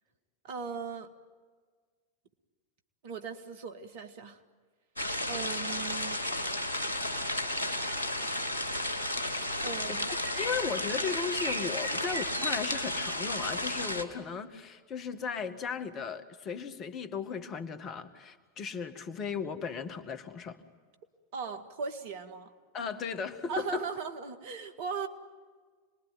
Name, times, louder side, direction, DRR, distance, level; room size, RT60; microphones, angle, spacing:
voice 1, 0.4-1.1 3.0-4.4 5.3-6.2 9.6-10.1 11.9-12.1 21.3-22.5 23.5-25.1, right 5 dB, 55° right, 8 dB, 2.0 m, -38 dB
sound 1, 5.0-14.0, left 1 dB, 90° right, 2.2 m, -32 dB
voice 2, 9.9-20.6 22.7-23.9, left 6 dB, 35° left, 8 dB, 1.9 m, -36 dB
27.5 x 21.0 x 9.6 m, 1.5 s
figure-of-eight pair, 85°, 0 cm